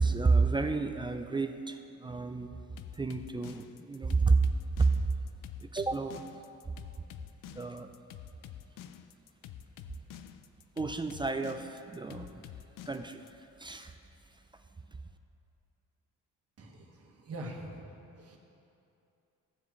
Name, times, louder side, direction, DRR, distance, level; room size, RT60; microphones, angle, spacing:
voice 1, 0.0-2.6 2.9-4.4 4.8-4.9 5.6-6.2 7.6-7.9 10.8-12.4 12.9-13.3 13.6-13.9, right 4 dB, 15° right, 7 dB, 0.4 m, -30 dB
sound 1, 2.8-13.3, left 10 dB, 80° left, 0.5 m, -47 dB
voice 2, 16.6-18.4, right 1 dB, 50° right, -1 dB, 1.5 m, -44 dB
15.5 x 7.3 x 3.2 m, 2.8 s
cardioid pair, 105°, 32 cm